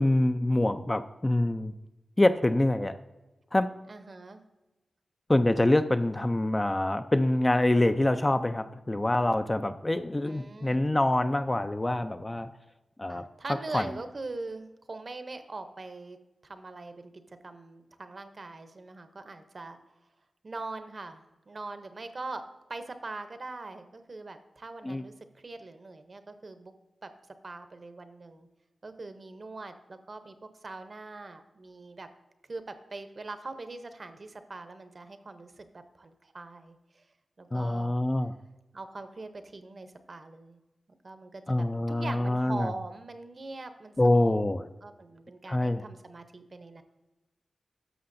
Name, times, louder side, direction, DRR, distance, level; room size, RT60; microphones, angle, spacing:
voice 1, 0.0-1.7 2.2-2.9 3.5-3.7 5.3-12.5 13.0-13.2 13.7-13.9 24.8-25.0 37.5-38.3 41.5-42.7 44.0-44.7 45.5-45.8, left 1 dB, 20° left, 9 dB, 0.3 m, -25 dB
voice 2, 3.9-4.4 10.2-10.8 13.1-16.2 16.4-19.8 20.4-22.4 22.7-26.7 27.0-27.1 27.4-28.5 28.8-30.4 30.6-32.1 32.5-32.6 32.9-37.0 37.4-38.0 38.7-40.6 41.0-44.4 44.8-46.8, right 3 dB, 40° right, 9 dB, 0.7 m, -42 dB
11.0 x 6.8 x 2.6 m, 1.1 s
wide cardioid pair, 125°, 0 cm